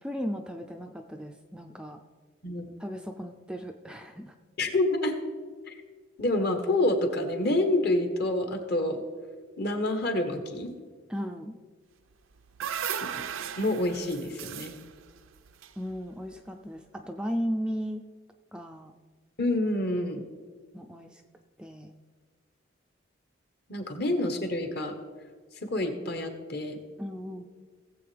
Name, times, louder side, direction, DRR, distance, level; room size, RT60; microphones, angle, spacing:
voice 1, 0.0-2.0 2.8-4.4 11.1-11.5 15.8-18.0 18.5-19.0 20.7-21.2 21.6-21.9 27.0-27.4, equal, 5° right, 4 dB, 0.4 m, -36 dB
voice 2, 4.6-5.1 5.7-5.8 6.2-9.0 9.6-10.7 13.0-13.2 13.6-14.7 19.4-20.2 23.7-24.9 25.6-26.8, left 1 dB, 50° left, 6 dB, 1.3 m, -28 dB
sound 1, 12.1-16.4, right 8 dB, 80° right, 0.5 m, -37 dB
18.0 x 7.6 x 3.4 m, 1.5 s
head